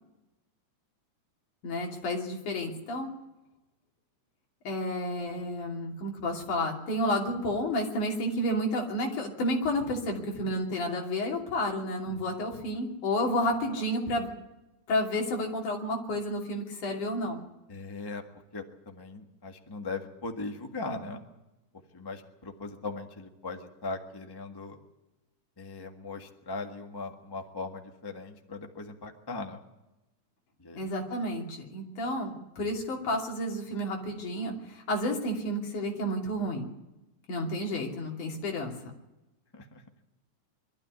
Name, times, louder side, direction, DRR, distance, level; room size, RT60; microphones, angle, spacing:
voice 1, 1.6-3.1 4.6-14.3 14.9-17.4 30.7-36.7 37.3-38.7, left 1 dB, 85° left, 0 dB, 4.3 m, -31 dB
voice 2, 17.7-18.2 18.5-21.2 21.9-24.8 25.6-29.6 30.6-30.9 39.5-39.8, left 3 dB, 15° left, 4 dB, 0.8 m, -39 dB
23.0 x 13.0 x 9.6 m, 1.0 s
omnidirectional pair, 3.4 m